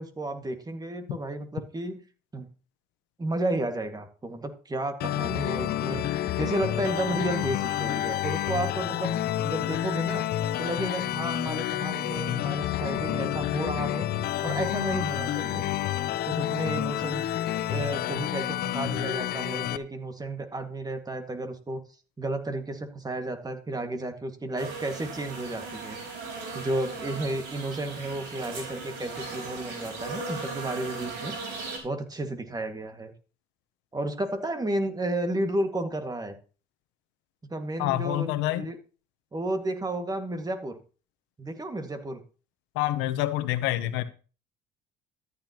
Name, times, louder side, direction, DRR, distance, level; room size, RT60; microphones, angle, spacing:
voice 1, 0.0-2.0 2.3-2.5 3.2-6.0 6.4-9.2 9.4-10.3 10.6-14.1 14.4-15.7 16.2-17.2 17.7-21.8 22.2-26.0 26.5-31.4 31.8-33.1 33.9-36.4 37.4-38.8 39.3-40.8 41.4-42.2, right 1 dB, 20° right, 2.0 m, -32 dB
sound 1, 5.0-19.8, left 13 dB, 60° left, 0.7 m, -29 dB
sound 2, 24.6-31.8, right 3 dB, 75° right, 4.3 m, -37 dB
voice 2, 37.8-38.7 42.7-44.0, left 15 dB, 80° left, 1.2 m, -27 dB
13.5 x 9.8 x 3.0 m
supercardioid pair, 75°, 19 cm